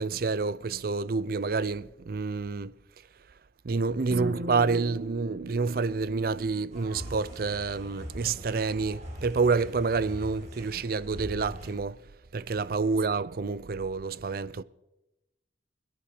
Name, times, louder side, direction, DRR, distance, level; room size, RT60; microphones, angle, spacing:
voice 1, 0.0-2.7 3.6-12.0 12.3-14.6, right 4 dB, 55° right, 0.5 m, -28 dB
sound 1, 4.1-8.3, right 2 dB, 80° right, 1.2 m, -40 dB
sound 2, 6.7-11.7, equal, 40° right, 4.3 m, -42 dB
22.5 x 10.5 x 5.1 m
head